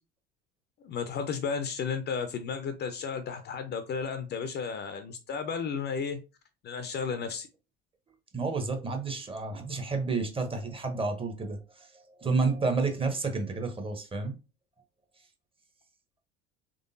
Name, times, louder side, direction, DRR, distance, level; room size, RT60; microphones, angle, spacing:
voice 1, 0.8-6.2 6.6-7.5, left 6 dB, 30° left, 0.5 m, -33 dB
voice 2, 8.3-14.4, right 4 dB, 15° right, 0.7 m, -30 dB
3.8 x 3.3 x 2.6 m
figure-of-eight pair, 65°, 33 cm